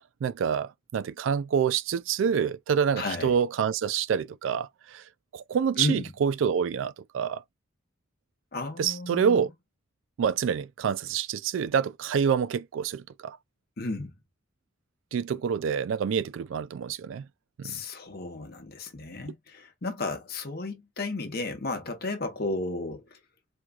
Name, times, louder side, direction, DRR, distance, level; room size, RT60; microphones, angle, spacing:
voice 1, 0.0-5.0 5.3-7.4 8.8-9.5 10.2-13.4 15.1-17.3 17.6-17.8, right 7 dB, 70° right, 0.3 m, -27 dB
voice 2, 3.0-3.3 5.8-6.1 8.5-9.5 13.8-14.1 17.6-23.2, left 2 dB, 50° left, 1.0 m, -33 dB
4.4 x 2.4 x 2.3 m
head